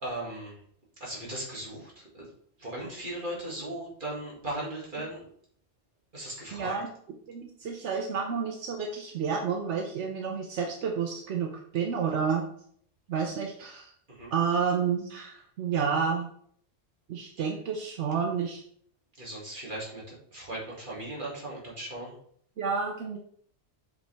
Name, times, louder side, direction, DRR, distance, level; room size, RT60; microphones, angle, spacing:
voice 1, 0.0-0.6 1.0-2.3 2.6-5.3 6.1-6.7 14.1-14.3 19.2-22.1, right 1 dB, 45° right, -4 dB, 2.5 m, -37 dB
voice 2, 6.5-6.9 7.3-12.4 13.1-13.9 14.3-16.3 17.1-18.6 22.6-23.2, right 6 dB, 80° right, 2 dB, 1.1 m, -30 dB
7.5 x 5.2 x 3.4 m, 0.62 s
omnidirectional pair, 1.2 m